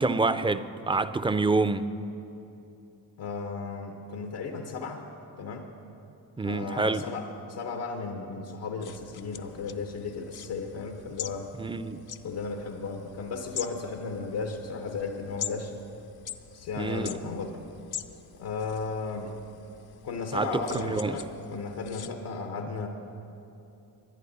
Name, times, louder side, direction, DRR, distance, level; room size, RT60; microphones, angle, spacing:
voice 1, 0.0-1.8 6.4-7.1 11.6-12.1 16.8-17.2 20.3-21.2, right 3 dB, 15° right, 13 dB, 0.4 m, -27 dB
voice 2, 3.2-5.0 5.4-5.7 6.4-11.5 12.2-15.7 16.5-17.6 18.4-19.4 20.0-22.9, left 4 dB, 85° left, 3 dB, 1.1 m, -35 dB
sound 1, 8.8-22.1, left 10 dB, 65° left, 0.7 m, -44 dB
20.5 x 11.0 x 4.1 m, 2.8 s
cardioid pair, 80°, 40 cm